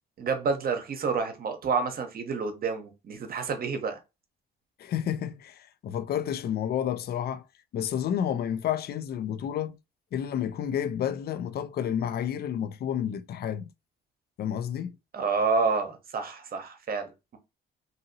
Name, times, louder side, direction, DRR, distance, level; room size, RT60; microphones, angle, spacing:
voice 1, 0.2-4.0 15.1-17.4, right 4 dB, 50° right, 0.8 m, -29 dB
voice 2, 4.8-7.4 7.7-9.8 10.1-13.7 14.4-14.9, left 9 dB, 55° left, 0.4 m, -30 dB
2.7 x 2.7 x 2.7 m
cardioid pair, 90°, 20 cm